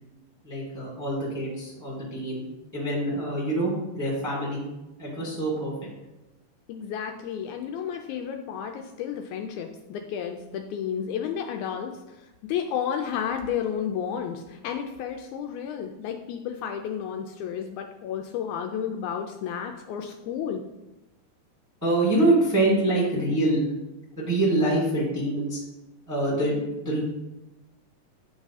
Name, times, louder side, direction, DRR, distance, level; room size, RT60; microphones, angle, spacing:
voice 1, 0.4-2.4 2.7-4.7 5.0-5.9 21.8-23.6 24.2-25.6 26.1-27.0, right 1 dB, 10° right, -5 dB, 1.1 m, -25 dB
voice 2, 6.7-20.6, left 8 dB, 80° left, 4 dB, 1.8 m, -32 dB
9.3 x 3.6 x 4.1 m, 1.0 s
omnidirectional pair, 3.6 m